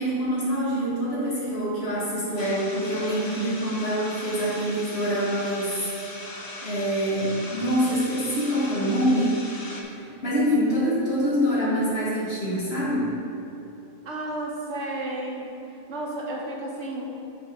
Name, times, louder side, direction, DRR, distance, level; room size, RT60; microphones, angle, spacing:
voice 1, 0.0-5.9 6.6-9.4 9.8-13.1, equal, 55° left, -8 dB, 2.1 m, -25 dB
sound 1, 2.4-9.8, left 1 dB, 25° left, 0.5 m, -39 dB
voice 2, 14.0-17.0, right 1 dB, 70° right, -2 dB, 1.3 m, -32 dB
5.6 x 4.9 x 5.4 m, 3.0 s
omnidirectional pair, 1.2 m